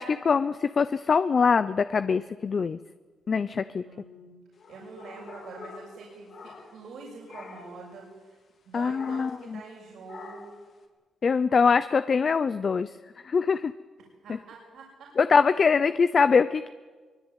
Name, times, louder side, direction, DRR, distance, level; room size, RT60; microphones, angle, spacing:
voice 1, 0.0-2.8 3.3-3.8 8.7-9.6 11.2-12.9 13.2-13.7 15.2-16.7, left 5 dB, 45° left, 12 dB, 0.7 m, -23 dB
voice 2, 3.8-4.4 4.7-8.4 8.6-10.5 14.2-15.1, right 4 dB, 80° right, -3 dB, 6.7 m, -45 dB
sound 1, 4.6-7.0 7.3-7.8 8.9-9.5 10.1-10.6, left 4 dB, 60° left, 3.9 m, -46 dB
24.0 x 22.0 x 9.2 m, 1.4 s
cardioid pair, 110°, 0 cm